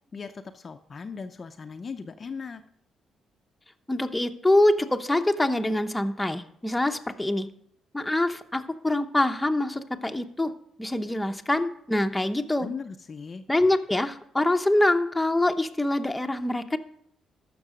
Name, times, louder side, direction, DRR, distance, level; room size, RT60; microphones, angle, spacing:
voice 1, 0.1-2.6 12.6-13.4, left 5 dB, 40° left, 6 dB, 0.6 m, -38 dB
voice 2, 3.9-7.5 7.9-10.5 10.8-12.7 13.5-16.8, left 1 dB, 10° left, 5 dB, 0.8 m, -25 dB
14.0 x 6.1 x 4.9 m, 0.68 s
cardioid pair, 90°, 0 cm